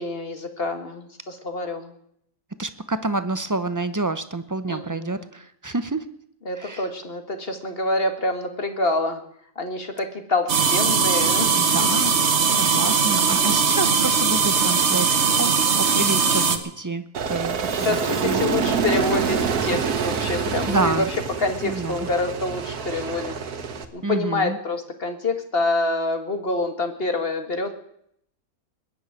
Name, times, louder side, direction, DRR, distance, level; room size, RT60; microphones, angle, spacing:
voice 1, 0.0-1.9 4.7-5.3 6.5-9.2 9.6-11.9 16.3-16.6 17.8-21.1 21.4-23.4 23.9-27.8, left 2 dB, 40° left, 7 dB, 1.9 m, -27 dB
voice 2, 2.6-6.1 6.6-6.9 11.5-12.1 12.5-15.1 15.4-17.0 17.3-18.4 20.7-21.1 21.6-22.1 24.0-24.6, right 3 dB, 25° right, 11 dB, 0.4 m, -28 dB
sound 1, 10.5-16.6, right 5 dB, 50° right, 1.5 m, -20 dB
Aircraft, 17.1-23.8, right 5 dB, 80° right, 1.7 m, -26 dB
21.0 x 7.1 x 9.7 m, 0.72 s
omnidirectional pair, 1.6 m